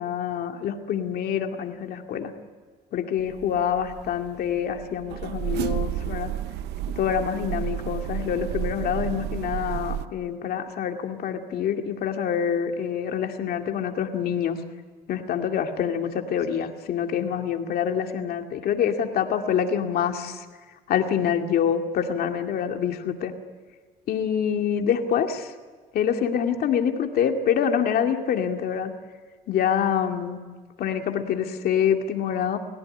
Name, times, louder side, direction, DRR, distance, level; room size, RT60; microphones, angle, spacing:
voice 1, 0.0-2.3 2.9-6.3 7.0-14.6 15.1-20.4 20.9-23.3 24.1-25.5 25.9-28.9 29.5-30.4 30.8-32.6, left 8 dB, 65° left, 4 dB, 2.4 m, -26 dB
sound 1, 3.2-10.1, right 12 dB, 85° right, 0.8 m, -31 dB
30.0 x 16.0 x 10.0 m, 1.5 s
cardioid pair, 110°, 17 cm